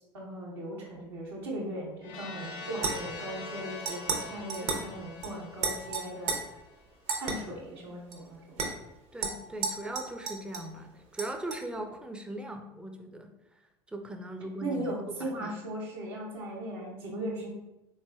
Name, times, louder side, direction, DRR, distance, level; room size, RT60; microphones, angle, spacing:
voice 1, 0.1-6.4 7.2-8.7 14.6-17.5, right 1 dB, 75° right, -3 dB, 0.9 m, -38 dB
sound 1, 2.0-6.9, left 4 dB, 55° left, 0.6 m, -44 dB
sound 2, 2.8-3.2 3.9-4.2 4.5-4.9 5.2-5.3 5.6-6.4 7.1-7.3 8.1-8.2 8.6-8.7 9.2-10.7 11.2-11.6, right 5 dB, 50° right, 0.7 m, -33 dB
voice 2, 9.1-13.3 13.9-15.6, right 1 dB, 5° right, 5 dB, 0.4 m, -39 dB
3.6 x 3.2 x 2.3 m, 0.93 s
figure-of-eight pair, 65°, 14 cm